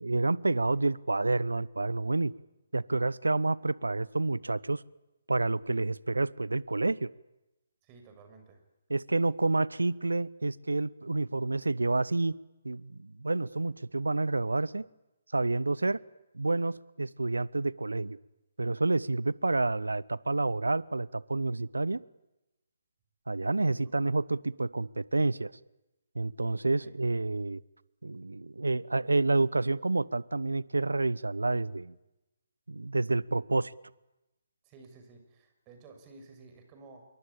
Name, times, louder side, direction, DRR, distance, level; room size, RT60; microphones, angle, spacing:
voice 1, 0.0-2.3 2.7-4.8 5.3-7.1 8.9-12.4 12.6-14.8 15.3-16.0 16.3-18.2 18.6-22.0 23.3-25.5 26.1-27.6 28.0-31.9 32.7-33.7, right 2 dB, 80° right, 22 dB, 0.9 m, -29 dB
voice 2, 7.8-8.6 23.6-23.8 26.8-26.9 34.6-37.0, right 3 dB, 25° right, 6 dB, 6.3 m, -53 dB
27.0 x 23.0 x 8.6 m, 0.96 s
figure-of-eight pair, 140°, 0 cm